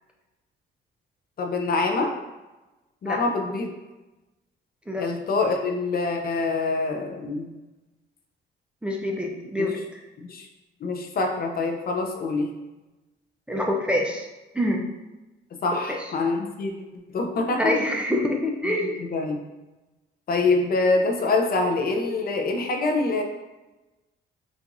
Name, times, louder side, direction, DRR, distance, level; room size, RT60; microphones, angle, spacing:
voice 1, 1.4-2.1 3.0-3.7 5.0-7.5 9.6-9.7 10.2-10.5 10.8-12.5 15.6-16.7 17.1-17.7 18.6-19.4 20.3-23.2, left 3 dB, 50° left, 3 dB, 0.6 m, -25 dB
voice 2, 8.8-9.8 13.5-14.3 14.5-14.8 15.9-16.0 17.6-19.0, left 1 dB, 5° right, -1 dB, 0.5 m, -25 dB
4.6 x 2.5 x 2.6 m, 1.1 s
cardioid pair, 90°, 20 cm